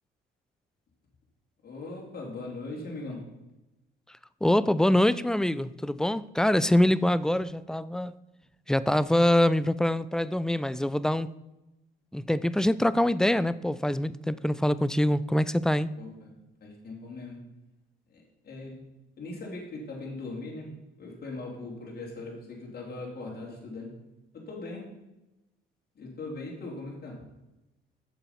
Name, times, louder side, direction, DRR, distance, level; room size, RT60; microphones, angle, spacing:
voice 1, 1.6-3.3 16.0-16.3 16.6-17.5 18.1-18.8 19.2-24.0 24.3-24.9 25.9-27.3, left 2 dB, 50° left, -2 dB, 2.8 m, -40 dB
voice 2, 4.4-8.2 8.7-11.3 12.1-15.9, left 1 dB, 5° left, 16 dB, 0.3 m, -24 dB
7.1 x 7.0 x 5.7 m, 0.98 s
cardioid pair, 90°, 20 cm